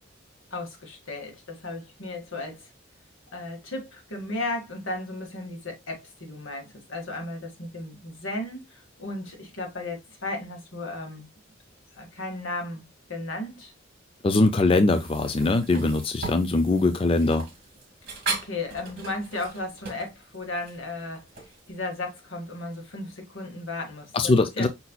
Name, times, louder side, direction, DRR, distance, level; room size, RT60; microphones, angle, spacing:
voice 1, 0.5-2.7 3.3-11.3 12.0-13.7 18.3-21.2 21.7-24.7, left 2 dB, 85° left, 1.7 m, -35 dB
voice 2, 14.2-17.5 24.1-24.7, left 2 dB, 30° left, 0.4 m, -22 dB
sound 1, 14.9-21.7, right 4 dB, 50° right, 1.9 m, -38 dB
5.5 x 4.1 x 2.2 m
head